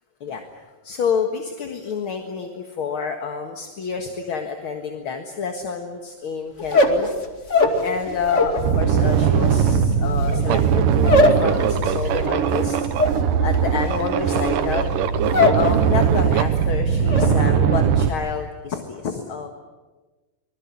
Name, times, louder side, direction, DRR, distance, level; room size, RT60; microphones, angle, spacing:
voice 1, 0.2-7.1 7.8-12.8 13.4-15.0 15.5-19.5, left 6 dB, 50° left, 5 dB, 2.1 m, -28 dB
sound 1, 6.6-8.6 8.9-15.7 16.0-16.5 16.8-17.3, left 2 dB, 25° left, 2.1 m, -21 dB
sound 2, 7.7-7.8 8.2-18.1, right 7 dB, 90° right, 2.8 m, -20 dB
25.0 x 21.5 x 9.9 m, 1.2 s
omnidirectional pair, 3.7 m